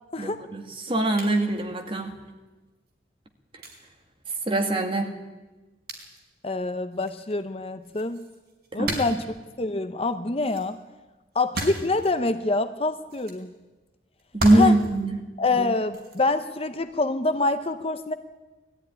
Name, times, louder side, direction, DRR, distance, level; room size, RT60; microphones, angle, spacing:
voice 1, 0.2-2.1 4.5-5.1 8.8-9.0 14.3-15.2, right 1 dB, 30° right, 4 dB, 2.1 m, -22 dB
sound 1, 1.2-1.3 2.9-3.0 3.6-3.8 5.9-6.2 6.9-7.4 7.8-9.4 10.4-10.7 11.3-12.1 13.1-13.4 14.2-15.0 15.9-16.2 16.8-17.0, right 1 dB, 55° right, 4.4 m, -34 dB
voice 2, 6.4-8.2 8.7-9.3 9.6-10.8 11.3-13.5 14.5-14.7 15.4-18.1, left 3 dB, 30° left, 10 dB, 0.8 m, -26 dB
19.5 x 14.0 x 9.9 m, 1.2 s
head